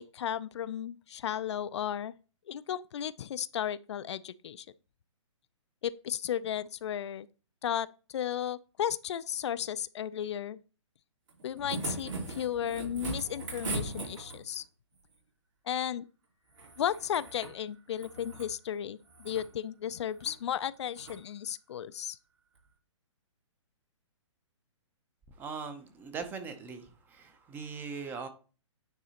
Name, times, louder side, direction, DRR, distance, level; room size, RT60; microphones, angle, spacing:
voice 1, 0.0-2.1 2.5-4.7 5.8-7.3 7.6-10.6 11.4-14.6 15.7-16.1 16.8-22.2, left 10 dB, 60° left, 0.4 m, -34 dB
sound 1, 11.3-14.6 16.5-17.6 17.9-18.5 19.0-19.5 20.1-20.4 20.9-21.2 22.6-22.7, right 2 dB, 75° right, 3.2 m, -39 dB
voice 2, 25.4-28.3, right 5 dB, 10° right, 0.6 m, -40 dB
9.2 x 4.0 x 2.9 m
hypercardioid pair, 150°, 16 cm